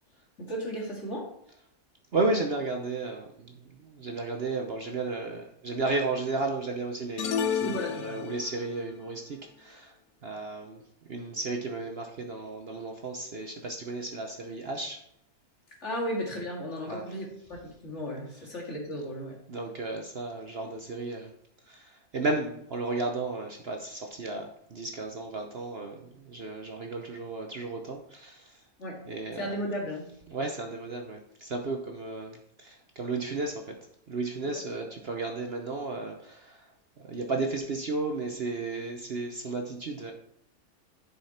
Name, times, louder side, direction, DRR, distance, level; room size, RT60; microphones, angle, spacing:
voice 1, 0.4-1.3 7.6-8.3 15.8-19.4 28.8-29.0 29.3-30.1 34.4-34.6, equal, 50° left, -1 dB, 2.6 m, -35 dB
voice 2, 2.1-9.9 10.2-10.8 11.1-15.0 16.9-17.0 19.5-21.3 21.7-28.6 29.1-29.5 30.3-33.8 34.1-36.7 37.1-40.1, right 3 dB, 45° right, 3 dB, 1.0 m, -33 dB
sound 1, 7.2-8.7, left 7 dB, 85° left, 1.3 m, -31 dB
11.0 x 5.7 x 4.3 m, 0.75 s
omnidirectional pair, 1.6 m